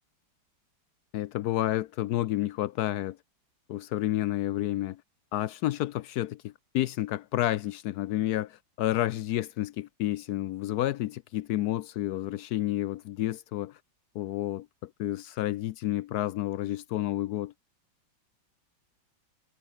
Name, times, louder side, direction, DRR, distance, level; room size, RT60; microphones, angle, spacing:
voice 1, 1.1-3.2 3.7-5.0 5.3-13.8 14.1-17.5, left 14 dB, 75° left, 0.9 m, -30 dB
omnidirectional pair, 2.1 m